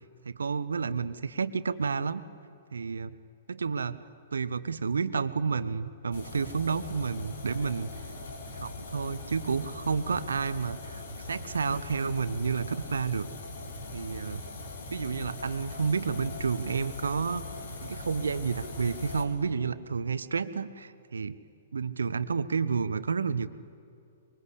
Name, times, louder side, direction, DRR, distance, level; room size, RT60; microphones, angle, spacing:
voice 1, 0.2-2.2 2.7-3.1 3.5-4.0 4.3-7.9 8.5-13.3 13.9-14.4 14.9-17.4 17.8-21.4 21.7-23.5, right 5 dB, 70° right, 15 dB, 0.9 m, -30 dB
sound 1, 6.1-19.2, left 3 dB, 60° left, 4.0 m, -41 dB
24.5 x 23.5 x 8.3 m, 2.7 s
figure-of-eight pair, 110°, 0 cm